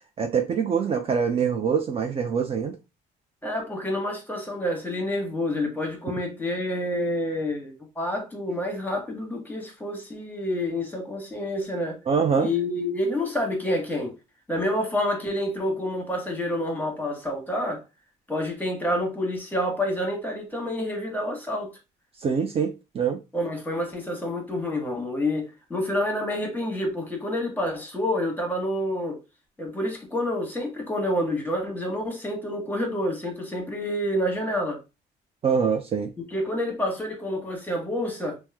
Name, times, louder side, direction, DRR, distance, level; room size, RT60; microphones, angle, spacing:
voice 1, 0.2-2.7 12.1-12.5 22.2-23.2 35.4-36.1, right 6 dB, 35° right, 0.5 m, -24 dB
voice 2, 3.4-12.0 12.3-14.1 14.5-17.8 18.3-21.7 23.3-29.2 29.6-34.8 36.3-38.4, left 1 dB, 10° left, 1.1 m, -28 dB
2.9 x 2.0 x 3.4 m
cardioid pair, 110°, 17 cm